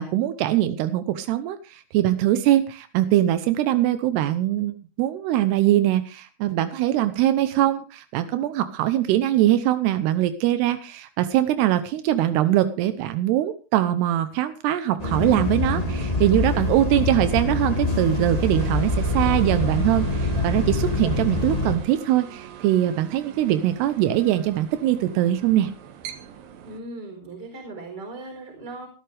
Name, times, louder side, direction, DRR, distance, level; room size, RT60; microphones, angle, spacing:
voice 1, 0.0-25.7, right 13 dB, 85° right, 11 dB, 2.9 m, -22 dB
Bus, 15.0-21.8, left 2 dB, 20° left, 0.9 m, -25 dB
sound 1, 15.2-26.8, right 7 dB, 65° right, 2.9 m, -42 dB
voice 2, 26.6-28.9, right 2 dB, 25° right, 2 dB, 4.8 m, -38 dB
18.0 x 12.5 x 3.4 m, 0.35 s
omnidirectional pair, 4.6 m